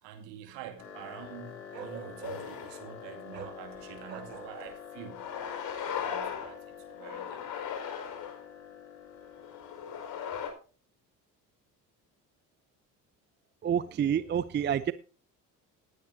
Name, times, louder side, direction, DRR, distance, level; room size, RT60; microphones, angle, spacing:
voice 1, 0.0-5.3 5.9-7.4, right 8 dB, 55° right, 2.4 m, -47 dB
sound 1, 0.8-10.4, left 7 dB, 70° left, 2.7 m, -47 dB
Bark, 1.7-2.6 3.3-3.6 4.0-4.8 5.8-6.1, right 7 dB, 85° right, 1.2 m, -44 dB
sound 2, 2.2-2.9 3.4-3.5 4.5-4.7 5.1-6.6 7.0-8.4 9.2-10.5, left 8 dB, 45° left, 4.8 m, -38 dB
voice 2, 13.6-14.9, right 8 dB, 20° right, 0.6 m, -28 dB
18.5 x 9.8 x 2.7 m
figure-of-eight pair, 50°, 50 cm